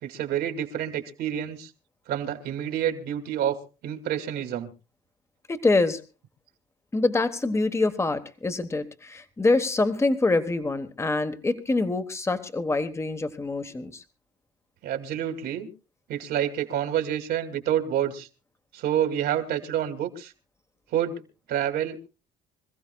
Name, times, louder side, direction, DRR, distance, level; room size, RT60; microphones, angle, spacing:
voice 1, 0.0-1.7 2.1-3.6 3.8-4.7 14.8-15.7 16.1-18.3 18.7-20.3 20.9-21.2 21.5-22.1, right 10 dB, 75° right, 6 dB, 2.5 m, -28 dB
voice 2, 5.5-6.0 6.9-14.0, left 3 dB, 15° left, 9 dB, 1.2 m, -25 dB
26.0 x 15.0 x 2.3 m, 0.32 s
cardioid pair, 110°, 17 cm